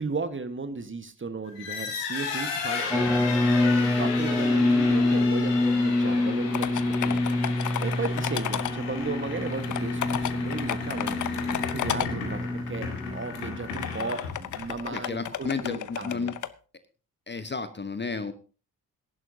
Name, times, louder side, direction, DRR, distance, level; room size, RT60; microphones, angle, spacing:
voice 1, 0.0-3.1 3.6-7.3 7.8-11.2 11.7-16.3, right 4 dB, 25° right, 10 dB, 1.5 m, -35 dB
sound 1, 1.5-14.9, left 5 dB, 80° left, 2.1 m, -35 dB
sound 2, 2.9-13.9, left 2 dB, ahead, 0.7 m, -26 dB
sound 3, 6.5-8.7 9.5-12.1 13.0-13.1 13.7-16.5, left 11 dB, 40° left, 0.7 m, -32 dB
voice 2, 14.9-16.3 17.3-18.3, left 4 dB, 25° left, 11 dB, 1.1 m, -32 dB
22.0 x 11.0 x 2.8 m, 0.36 s
figure-of-eight pair, 40°, 47 cm